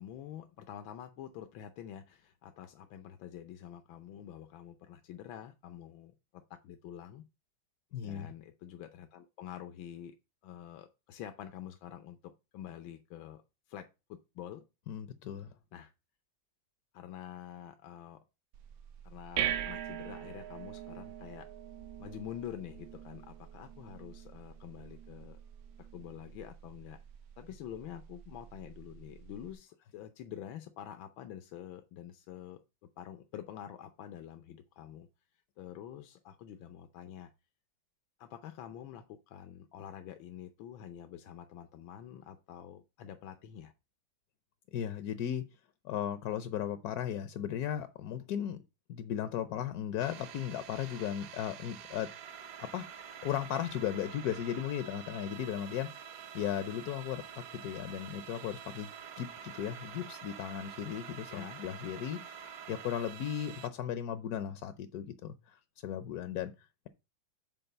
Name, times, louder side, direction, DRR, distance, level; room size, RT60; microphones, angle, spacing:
voice 1, 0.0-6.1 6.5-7.2 8.0-10.2 10.4-13.4 13.7-14.7 15.7-15.9 16.9-18.2 19.0-21.5 22.0-25.4 25.8-27.0 27.4-32.6 33.0-35.1 35.6-37.3 38.2-43.7 61.3-61.6, left 10 dB, 85° left, 1.5 m, -47 dB
voice 2, 7.9-8.3 14.9-15.5 44.7-45.5 45.8-48.6 48.9-52.1 52.6-52.9 53.2-56.1 56.3-66.9, left 10 dB, 65° left, 1.0 m, -36 dB
sound 1, 18.5-29.5, right 10 dB, 85° right, 1.7 m, -42 dB
sound 2, 50.0-63.7, right 8 dB, 55° right, 1.2 m, -47 dB
7.9 x 4.7 x 6.6 m
omnidirectional pair, 2.1 m